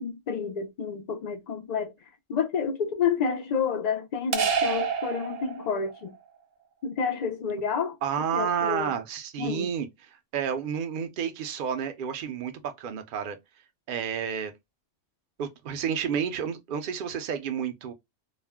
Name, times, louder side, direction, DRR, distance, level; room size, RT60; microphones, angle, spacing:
voice 1, 0.0-1.9 2.3-6.1 6.8-8.0 8.3-8.9 9.4-9.7, left 6 dB, 75° left, 0.3 m, -29 dB
sound 1, 4.3-6.0, right 6 dB, 80° right, 0.9 m, -28 dB
voice 2, 8.0-13.4 13.9-14.5 15.4-17.9, right 7 dB, 55° right, 0.6 m, -30 dB
2.4 x 2.1 x 3.4 m
omnidirectional pair, 1.3 m